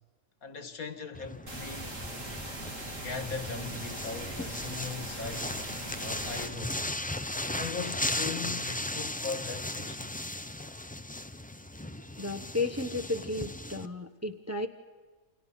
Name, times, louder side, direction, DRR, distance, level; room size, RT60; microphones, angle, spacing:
voice 1, 0.4-2.0 3.0-5.5 6.0-6.8 7.6-10.3, left 4 dB, 70° left, 2.2 m, -39 dB
sound 1, 1.1-13.9, left 1 dB, 10° left, 0.4 m, -37 dB
sound 2, 1.5-6.5, right 1 dB, 55° right, 3.5 m, -40 dB
voice 2, 12.2-14.7, left 2 dB, 10° right, 1.0 m, -33 dB
29.0 x 28.0 x 5.9 m
omnidirectional pair, 1.6 m